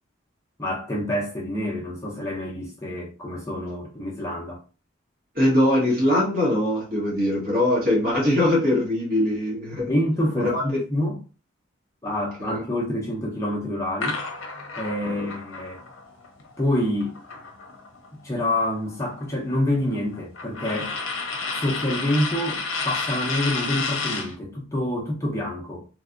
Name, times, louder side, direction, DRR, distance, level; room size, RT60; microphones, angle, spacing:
voice 1, 0.6-4.6 9.7-11.2 12.0-14.2 14.7-15.8 16.6-17.1 18.2-21.0 21.5-25.8, left 1 dB, 15° left, 0.6 m, -27 dB
voice 2, 5.3-9.9 10.4-10.6 12.0-12.1 12.4-12.6 15.0-15.3, left 1 dB, 45° right, 1.3 m, -22 dB
sound 1, 14.0-18.1 18.4-24.4, left 4 dB, 85° left, 0.6 m, -32 dB
3.2 x 2.6 x 2.4 m
head